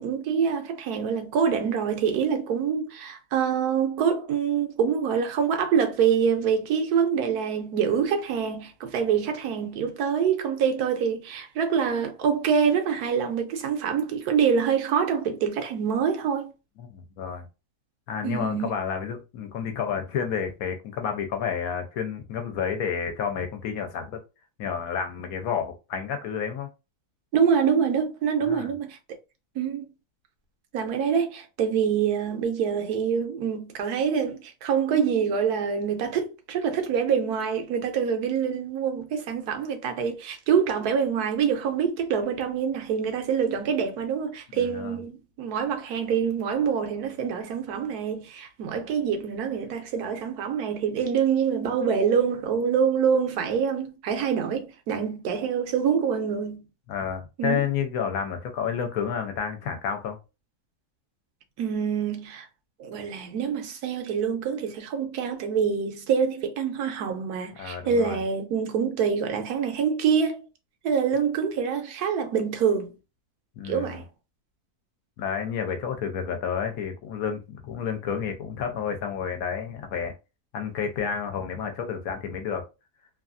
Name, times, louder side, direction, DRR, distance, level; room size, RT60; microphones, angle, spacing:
voice 1, 0.0-16.5 18.2-18.8 27.3-29.0 29.6-29.8 30.7-56.6 57.4-57.6 61.6-62.5 62.8-70.4 70.8-72.9 73.7-74.1, right 7 dB, 85° right, 1.2 m, -25 dB
voice 2, 16.8-17.5 18.1-24.2 24.6-26.7 28.4-28.7 44.5-45.0 56.9-60.2 67.6-68.2 73.6-74.0 75.2-80.1 80.5-82.6, left 7 dB, 70° left, 1.1 m, -30 dB
2.9 x 2.3 x 2.5 m
omnidirectional pair, 1.6 m